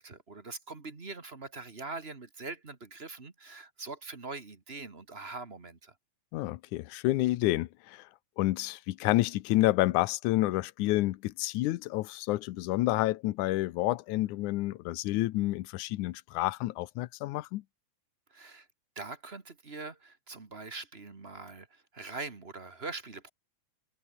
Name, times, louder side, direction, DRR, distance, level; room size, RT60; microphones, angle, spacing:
voice 1, 0.0-5.9 18.3-18.7 18.9-23.3, right 3 dB, 25° right, 1.7 m, -43 dB
voice 2, 6.3-8.1 8.4-17.6, left 17 dB, 80° left, 2.2 m, -29 dB
omnidirectional pair, 3.5 m